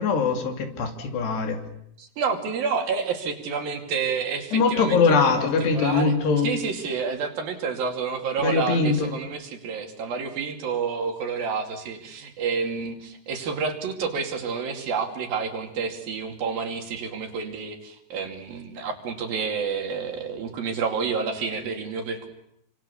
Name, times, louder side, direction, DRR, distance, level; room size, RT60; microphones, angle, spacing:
voice 1, 0.0-1.6 4.5-6.5 8.4-9.2, left 4 dB, 75° left, 5 dB, 4.8 m, -22 dB
voice 2, 2.0-5.5 5.7-6.1 6.4-22.3, right 5 dB, 60° right, 4 dB, 4.2 m, -29 dB
28.5 x 26.0 x 7.1 m, 0.74 s
omnidirectional pair, 4.8 m